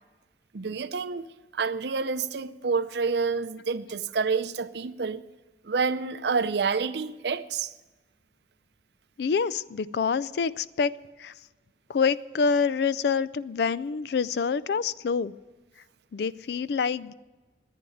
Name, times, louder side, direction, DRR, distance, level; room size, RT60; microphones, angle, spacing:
voice 1, 0.5-1.3 1.5-5.2 5.6-7.7, right 5 dB, 70° right, 0.6 m, -28 dB
voice 2, 9.2-11.3 11.9-15.3 16.1-17.1, left 5 dB, 65° left, 0.4 m, -26 dB
11.0 x 9.4 x 9.1 m
head